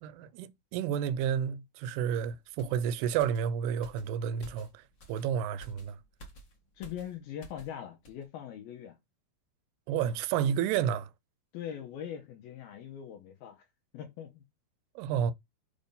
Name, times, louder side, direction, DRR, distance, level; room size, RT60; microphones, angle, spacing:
voice 1, 0.0-6.0 9.9-11.1 15.0-15.3, right 8 dB, 85° right, 2.6 m, -31 dB
sound 1, 2.6-7.8 8.0-8.2, right 2 dB, 60° left, 1.2 m, -53 dB
voice 2, 6.8-9.0 11.5-13.7 13.9-14.4, left 9 dB, 75° left, 2.6 m, -41 dB
7.1 x 2.5 x 5.3 m
omnidirectional pair, 4.5 m